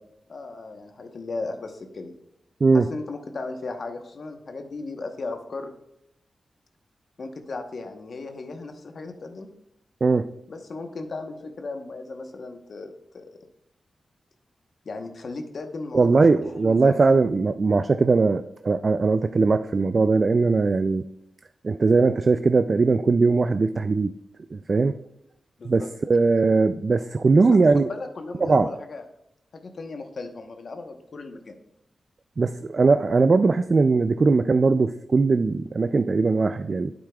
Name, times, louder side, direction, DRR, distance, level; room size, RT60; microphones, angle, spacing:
voice 1, 0.3-2.1 2.7-5.7 7.2-9.5 10.5-13.2 14.8-16.1 16.4-17.1 25.6-25.9 27.7-29.0 29.5-31.5, left 3 dB, 65° left, 5 dB, 1.0 m, -36 dB
voice 2, 15.9-21.0 21.6-24.1 24.5-25.0 25.6-27.9 28.4-28.7 32.4-36.9, right 4 dB, 55° right, 10 dB, 0.3 m, -20 dB
9.0 x 8.0 x 2.3 m, 0.80 s
cardioid pair, 50°, 0 cm